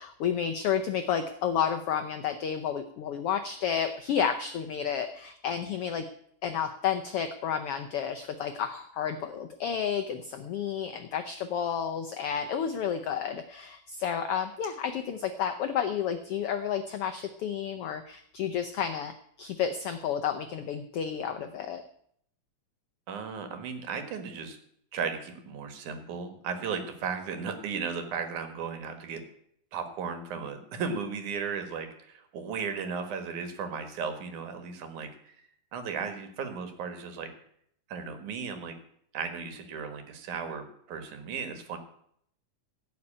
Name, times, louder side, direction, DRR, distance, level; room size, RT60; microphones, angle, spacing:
voice 1, 0.0-6.0 6.4-21.8, left 8 dB, 80° left, 7 dB, 1.3 m, -31 dB
voice 2, 23.1-24.6 24.9-29.2 29.7-35.3 35.7-37.3 37.9-38.7 39.1-41.8, right 6 dB, 75° right, 8 dB, 2.9 m, -35 dB
16.5 x 5.8 x 8.6 m, 0.68 s
omnidirectional pair, 3.6 m